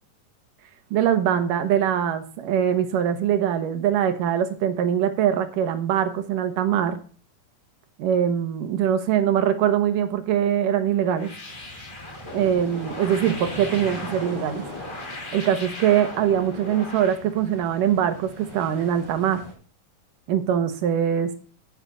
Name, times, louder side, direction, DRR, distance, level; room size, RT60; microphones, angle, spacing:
voice 1, 0.9-7.0 8.0-11.3 12.3-14.6 15.3-19.4 20.3-21.4, right 9 dB, 80° right, 9 dB, 2.9 m, -22 dB
sound 1, 11.1-17.2, left 2 dB, 30° left, 1.0 m, -38 dB
sound 2, 11.5-19.5, right 1 dB, 5° left, 4.3 m, -40 dB
10.0 x 10.0 x 4.1 m, 0.40 s
omnidirectional pair, 3.8 m